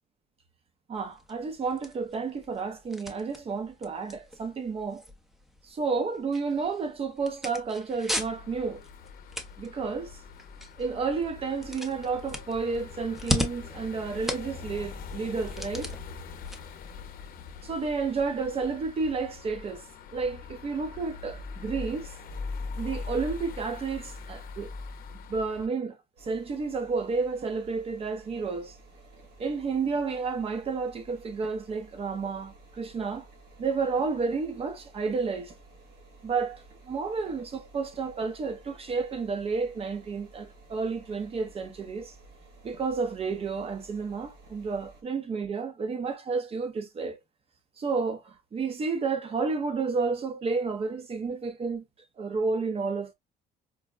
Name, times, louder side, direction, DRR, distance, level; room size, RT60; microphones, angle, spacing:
sound 1, 0.9-17.9, equal, ahead, 0.7 m, -39 dB
voice 1, 0.9-5.0 5.6-8.8 9.6-10.2 10.8-16.0 17.6-19.9 20.1-22.1 22.7-24.7 25.1-28.8 29.4-33.2 33.6-35.5 36.2-42.1 42.6-47.2 47.8-51.8 52.2-53.1, right 4 dB, 35° right, 0.9 m, -31 dB
sound 2, 8.1-25.7, left 4 dB, 60° left, 0.7 m, -42 dB
sound 3, 26.2-45.0, right 2 dB, 85° right, 1.8 m, -53 dB
4.7 x 2.2 x 2.2 m
cardioid pair, 110°, 17 cm